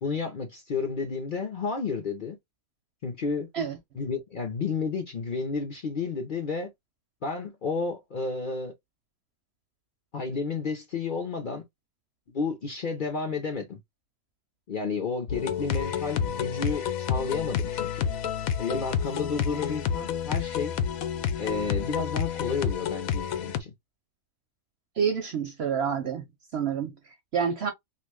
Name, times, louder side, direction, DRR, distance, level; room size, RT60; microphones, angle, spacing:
voice 1, 0.0-2.4 3.0-3.5 4.0-6.7 7.2-8.7 10.1-11.6 12.3-13.8 14.7-18.1 18.6-20.7 21.4-23.7, left 4 dB, 45° left, 0.7 m, -31 dB
sound 1, 15.3-23.6, left 8 dB, 75° left, 1.0 m, -29 dB
voice 2, 25.0-26.3 26.5-27.7, right 7 dB, 60° right, 0.7 m, -28 dB
3.0 x 2.5 x 3.4 m
omnidirectional pair, 1.5 m